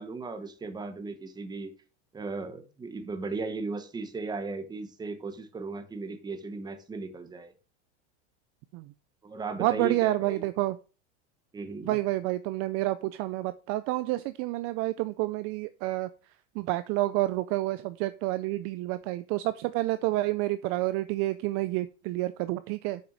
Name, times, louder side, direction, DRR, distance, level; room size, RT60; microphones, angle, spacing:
voice 1, 0.0-1.7 2.1-7.5 9.2-10.5 11.5-12.0, right 3 dB, 10° right, 8 dB, 1.1 m, -36 dB
voice 2, 9.6-10.8 11.8-16.1 16.6-23.0, right 17 dB, 40° right, 14 dB, 0.4 m, -29 dB
7.3 x 5.9 x 5.2 m, 0.35 s
supercardioid pair, 140°, 34 cm